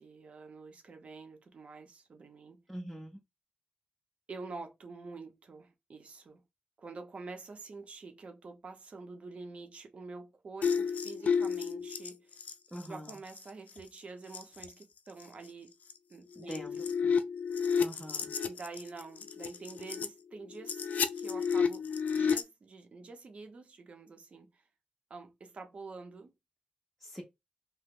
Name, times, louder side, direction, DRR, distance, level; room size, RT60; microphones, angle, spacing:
voice 1, 0.0-2.6 4.3-6.4 6.8-12.4 12.8-15.7 16.1-16.9 18.4-20.9 21.2-21.9 22.2-24.6 25.1-26.3, right 3 dB, 45° right, 0.6 m, -47 dB
voice 2, 2.7-3.2 12.7-13.2 16.4-16.8 17.8-18.3 27.0-27.2, equal, 5° right, 0.5 m, -43 dB
sound 1, 10.6-13.5 13.8-14.0 14.3-14.7 15.2-15.3 15.9-16.0 16.3-20.1 20.5-22.4, left 6 dB, 70° left, 0.4 m, -31 dB
2.9 x 2.0 x 3.5 m
wide cardioid pair, 170°, 3 cm